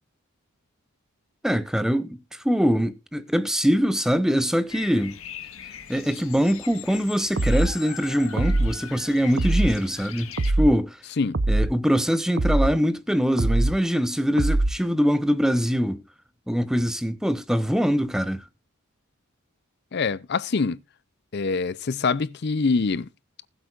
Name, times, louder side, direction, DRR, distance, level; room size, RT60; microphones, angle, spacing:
voice 1, 1.4-5.2 5.9-11.0 11.5-16.0 16.5-18.4, equal, ahead, 0.6 m, -23 dB
Bird vocalization bird call bird song, 4.7-10.5, left 8 dB, 75° left, 1.6 m, -40 dB
sound 1, 7.4-7.8 8.4-8.8 9.4-9.8 10.4-10.8 11.3-11.7 12.4-12.8 13.4-13.8 14.4-14.8, right 2 dB, 60° right, 0.7 m, -22 dB
voice 2, 19.9-20.8 21.3-23.1, left 4 dB, 50° left, 0.5 m, -24 dB
20.0 x 8.0 x 2.4 m
head